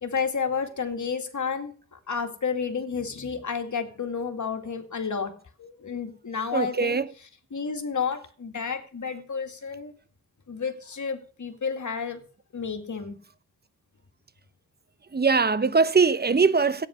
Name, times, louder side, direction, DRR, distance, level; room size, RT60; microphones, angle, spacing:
voice 1, 0.0-5.3 5.6-7.0 7.5-9.9 10.5-12.2 12.5-13.2, left 6 dB, 65° left, 2.2 m, -31 dB
voice 2, 6.5-7.1 15.1-16.9, right 4 dB, 30° right, 0.9 m, -21 dB
13.0 x 9.2 x 6.3 m
cardioid pair, 70°, 32 cm